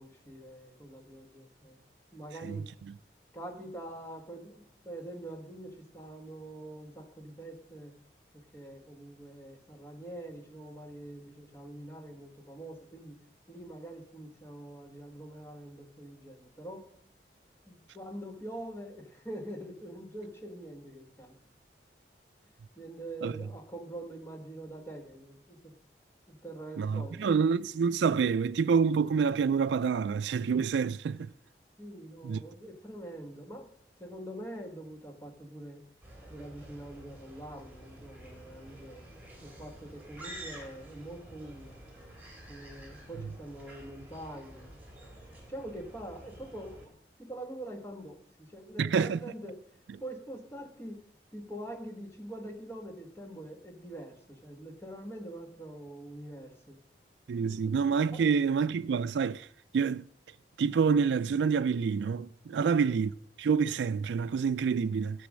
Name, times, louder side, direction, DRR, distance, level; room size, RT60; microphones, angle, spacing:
voice 1, 0.0-1.8 2.1-2.7 3.3-7.9 8.3-13.1 13.5-16.8 17.7-21.5 22.8-25.7 26.3-27.4 31.8-33.7 34.0-35.8 36.3-39.0 39.4-41.8 42.5-44.8 45.5-46.9 47.2-49.6 50.0-51.0 51.3-56.8 57.3-57.7 58.1-58.2 62.5-62.7, right 1 dB, 15° left, 1.7 m, -44 dB
voice 2, 26.8-31.3 32.2-32.4 48.8-49.2 57.3-59.5 59.7-60.0 60.6-63.1 63.4-65.3, right 6 dB, 90° right, 0.4 m, -27 dB
sound 1, 36.0-46.9, right 1 dB, 10° right, 3.0 m, -49 dB
13.5 x 6.9 x 6.3 m
head